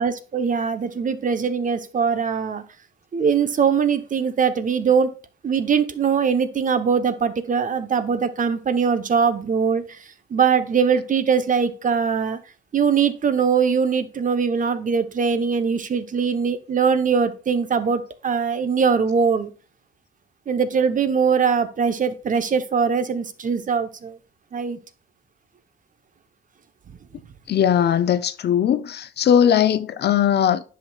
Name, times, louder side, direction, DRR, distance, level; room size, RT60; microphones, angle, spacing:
voice 1, 0.0-2.6 3.1-5.1 5.4-12.4 12.7-19.5 20.5-24.2 24.5-24.8, right 6 dB, 40° right, 0.9 m, -21 dB
voice 2, 27.5-30.6, left 9 dB, 55° left, 0.6 m, -19 dB
9.9 x 5.9 x 2.3 m
cardioid pair, 90°, 20 cm